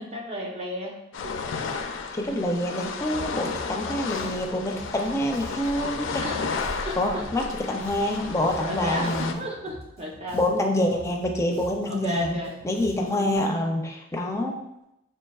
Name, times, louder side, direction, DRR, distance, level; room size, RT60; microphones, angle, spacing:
voice 1, 0.0-1.3 6.2-6.4 6.8-7.4 8.6-10.4 11.9-12.6, equal, 35° right, -1 dB, 0.8 m, -34 dB
sound 1, 1.1-9.3, left 4 dB, 80° left, 0.4 m, -32 dB
voice 2, 2.1-6.2 7.0-9.4 10.3-14.6, left 1 dB, 15° left, 1 dB, 0.5 m, -26 dB
Bass guitar, 3.5-13.4, equal, 55° right, 1.4 m, -45 dB
6.4 x 2.8 x 2.3 m, 0.87 s
head